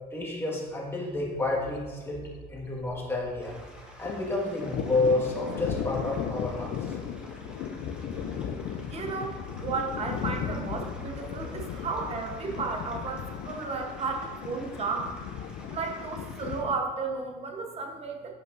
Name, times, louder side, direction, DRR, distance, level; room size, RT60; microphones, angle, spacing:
voice 1, 0.1-2.2 2.5-3.6 4.0-7.0, left 2 dB, 15° left, -3 dB, 1.5 m, -30 dB
Thunder, 1.2-1.4 1.6-1.7 2.0-3.5 3.8-16.8, left 7 dB, 75° left, 0.4 m, -36 dB
sound 1, 3.4-16.6, equal, 5° right, 1.1 m, -51 dB
voice 2, 8.9-15.1 15.7-18.3, right 4 dB, 35° right, 2 dB, 0.9 m, -33 dB
7.6 x 5.2 x 2.5 m, 1.3 s
cardioid pair, 110°, 17 cm